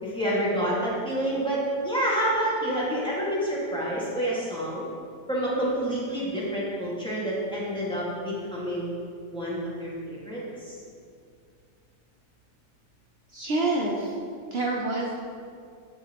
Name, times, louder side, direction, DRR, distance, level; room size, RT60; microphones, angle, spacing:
voice 1, 0.0-4.8 5.3-8.9 9.3-10.7, right 1 dB, 5° left, -7 dB, 1.6 m, -28 dB
voice 2, 13.3-14.2 14.5-15.2, right 2 dB, 70° right, -2 dB, 0.5 m, -27 dB
11.0 x 5.0 x 2.9 m, 2.3 s
omnidirectional pair, 1.9 m